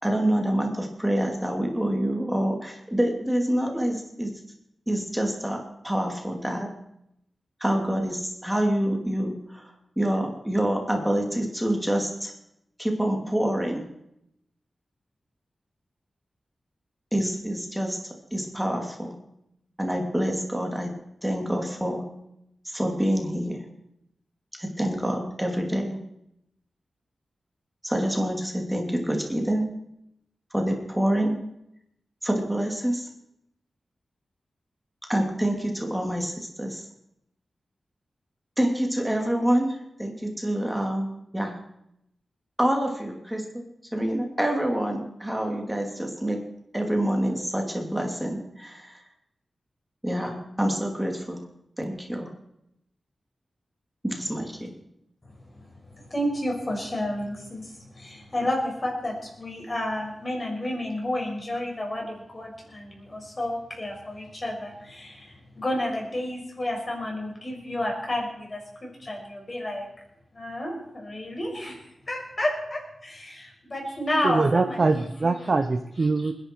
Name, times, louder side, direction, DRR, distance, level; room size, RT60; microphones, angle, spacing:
voice 1, 0.0-4.4 4.9-6.7 7.6-12.3 12.8-13.9 17.1-19.1 19.8-20.9 21.2-22.0 22.6-23.6 24.6-26.0 27.8-29.7 30.5-31.4 32.2-33.1 35.1-36.8 38.6-41.5 42.6-46.4 46.7-49.0 50.0-51.4 51.8-52.3 54.0-54.7, right 1 dB, 5° right, 2 dB, 2.7 m, -27 dB
voice 2, 56.1-68.6 69.0-69.9 70.3-71.8 72.1-75.4 76.2-76.3, left 1 dB, 30° left, -1 dB, 6.1 m, -31 dB
voice 3, 74.2-76.3, right 3 dB, 45° right, 7 dB, 0.8 m, -23 dB
27.5 x 11.0 x 4.7 m, 0.80 s
wide cardioid pair, 130°, 0 cm